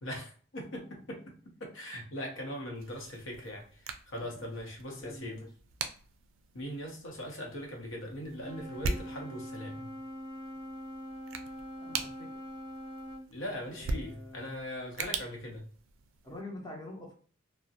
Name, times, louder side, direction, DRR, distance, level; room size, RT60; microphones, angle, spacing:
voice 1, 0.0-1.3 1.6-3.7 4.1-5.4 6.5-9.9 13.3-15.6, equal, 85° left, 1 dB, 0.7 m, -40 dB
sound 1, 2.7-16.4, right 4 dB, 75° right, 0.3 m, -42 dB
voice 2, 5.0-5.5 11.8-12.3 13.7-14.5 16.2-17.1, left 1 dB, 20° left, -1 dB, 0.6 m, -46 dB
Wind instrument woodwind instrument, 8.3-13.3, equal, 25° right, 0.7 m, -43 dB
2.4 x 2.0 x 2.6 m, 0.43 s
head